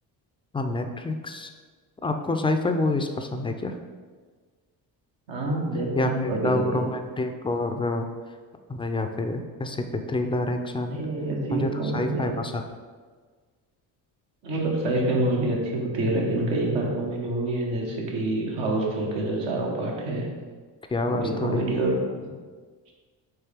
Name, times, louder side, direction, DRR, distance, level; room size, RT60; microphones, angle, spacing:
voice 1, 0.5-1.5 2.0-3.7 6.0-8.1 8.7-11.0 11.5-12.6 20.9-21.7, left 2 dB, 15° left, 6 dB, 0.3 m, -27 dB
voice 2, 5.3-6.9 10.9-12.3 14.4-20.3 21.0-22.3, right 2 dB, 80° right, -2 dB, 1.1 m, -27 dB
4.5 x 3.2 x 3.4 m, 1.5 s
supercardioid pair, 65°, 44 cm